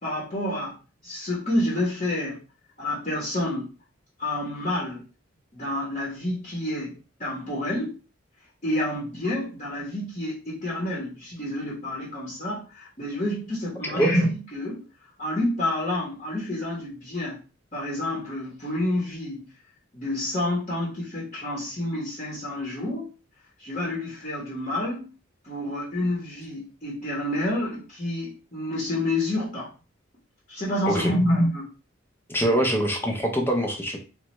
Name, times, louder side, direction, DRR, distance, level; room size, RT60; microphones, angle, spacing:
voice 1, 0.0-0.7 1.0-2.4 2.8-3.7 4.2-5.0 5.5-7.9 8.6-14.8 15.2-17.4 17.7-19.5 19.9-23.1 23.6-25.1 25.4-29.7 30.5-31.7, left 1 dB, 35° left, -6 dB, 0.9 m, -28 dB
voice 2, 32.3-34.0, right 1 dB, 10° left, 3 dB, 0.5 m, -24 dB
3.1 x 2.2 x 2.9 m, 0.34 s
head